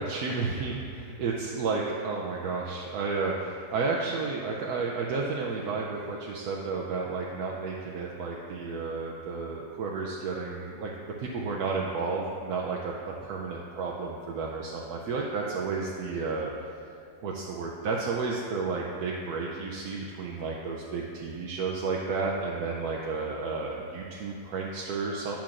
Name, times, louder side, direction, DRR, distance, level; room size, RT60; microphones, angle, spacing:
voice 1, 0.0-16.5 17.2-25.4, right 4 dB, 75° right, -2 dB, 1.1 m, -32 dB
10.5 x 5.8 x 2.5 m, 2.4 s
omnidirectional pair, 1.7 m